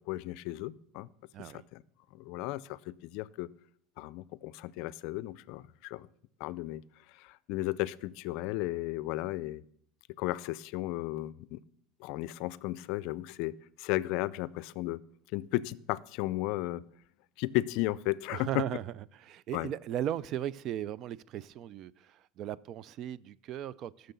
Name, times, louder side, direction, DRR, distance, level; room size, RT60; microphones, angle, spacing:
voice 1, 0.1-1.1 1.5-1.8 2.1-3.5 4.0-6.1 6.4-6.8 7.2-9.6 10.2-11.6 12.0-15.0 15.3-16.8 17.4-18.7 19.5-19.7, left 17 dB, 65° left, 0.4 m, -34 dB
voice 2, 18.3-24.1, right 11 dB, 50° right, 0.4 m, -37 dB
13.0 x 6.5 x 6.9 m
supercardioid pair, 125°, 0 cm